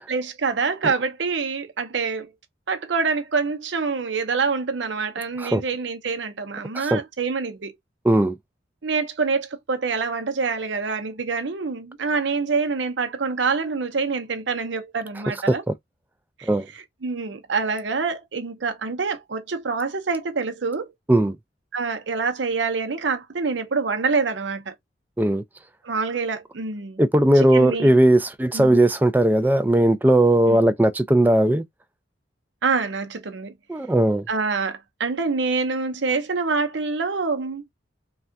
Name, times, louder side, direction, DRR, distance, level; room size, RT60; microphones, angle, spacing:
voice 1, 0.1-2.3 2.7-7.7 8.8-15.6 16.4-16.5 17.0-20.9 21.7-24.7 25.8-27.0 27.3-27.9 28.5-28.7 30.5-30.6 32.6-33.5 34.3-37.6, right 4 dB, 75° right, 0.7 m, -26 dB
voice 2, 8.0-8.4 15.7-15.8 16.4-16.7 21.1-21.4 25.2-25.4 27.0-31.6 33.7-34.2, right 1 dB, 10° right, 0.3 m, -18 dB
3.3 x 2.3 x 2.6 m
head